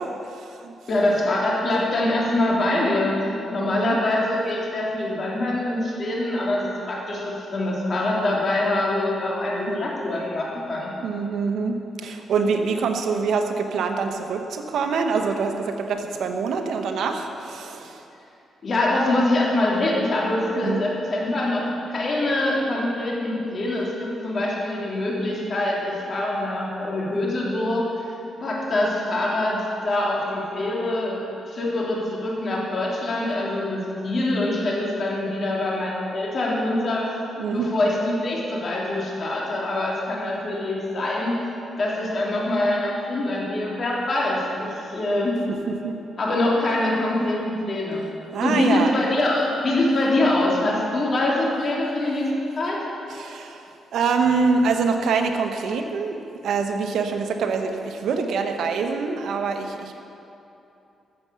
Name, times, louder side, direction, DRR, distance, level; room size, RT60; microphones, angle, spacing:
voice 1, 0.0-0.7 3.6-4.0 9.5-9.8 11.0-18.0 20.6-20.8 37.4-37.7 45.8-46.0 48.3-48.9 53.1-56.2 56.4-59.9, right 5 dB, 75° right, 5 dB, 1.1 m, -25 dB
voice 2, 0.9-3.2 3.5-10.9 18.6-27.9 28.4-37.1 37.5-41.4 41.8-45.4 46.2-48.1 48.4-52.8, left 1 dB, 45° left, -4 dB, 3.2 m, -24 dB
14.0 x 7.0 x 7.0 m, 2.8 s
cardioid pair, 100°, 0 cm